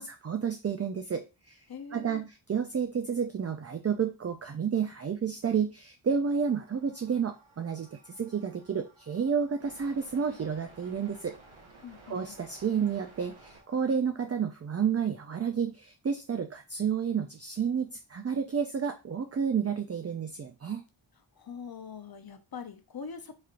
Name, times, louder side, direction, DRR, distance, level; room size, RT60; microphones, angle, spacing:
voice 1, 0.0-1.6 1.9-11.3 12.1-20.8, right 7 dB, 35° right, 0.4 m, -31 dB
voice 2, 1.7-2.2 11.8-12.4 21.3-23.4, left 5 dB, 50° left, 0.6 m, -43 dB
sound 1, 6.2-13.9, right 2 dB, 70° right, 1.4 m, -56 dB
4.9 x 2.9 x 2.4 m
wide cardioid pair, 75°, 49 cm